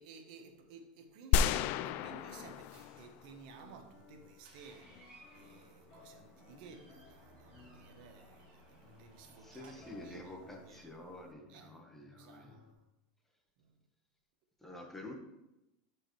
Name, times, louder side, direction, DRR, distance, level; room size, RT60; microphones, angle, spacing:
voice 1, 0.0-5.0 5.3-10.2 10.5-10.9 11.5-11.8 12.1-12.7 13.6-13.7, right 5 dB, 60° right, 1.1 m, -55 dB
sound 1, 1.3-3.6, left 8 dB, 50° left, 0.3 m, -32 dB
sound 2, 2.3-12.7, left 5 dB, 30° left, 2.0 m, -61 dB
Door, 2.7-10.7, right 2 dB, 30° right, 2.6 m, -62 dB
voice 2, 9.4-12.6 14.6-15.1, left 1 dB, 5° left, 1.2 m, -49 dB
11.5 x 4.7 x 3.1 m
supercardioid pair, 140°, 5 cm